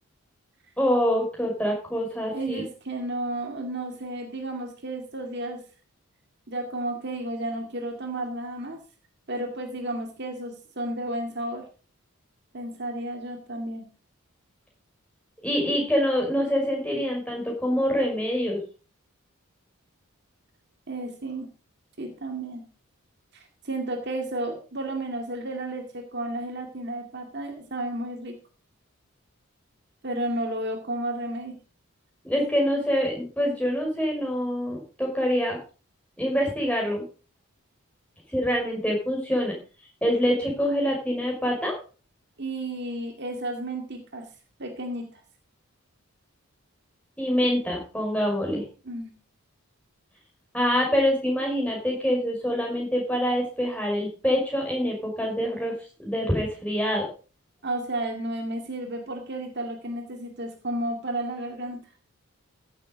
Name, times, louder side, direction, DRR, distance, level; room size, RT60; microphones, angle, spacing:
voice 1, 0.8-2.6 15.4-18.6 32.2-35.6 36.2-37.0 38.3-39.5 40.0-41.7 47.2-48.6 50.5-55.7 56.0-57.1, equal, 5° left, -1 dB, 5.4 m, -25 dB
voice 2, 2.3-5.6 6.5-8.8 9.3-11.6 12.5-13.9 20.9-21.5 22.0-22.6 23.3-28.3 30.0-31.6 42.4-44.3 44.6-45.2 48.8-49.1 57.6-61.8, right 1 dB, 50° right, 4 dB, 2.1 m, -32 dB
15.0 x 7.5 x 5.2 m, 0.37 s
head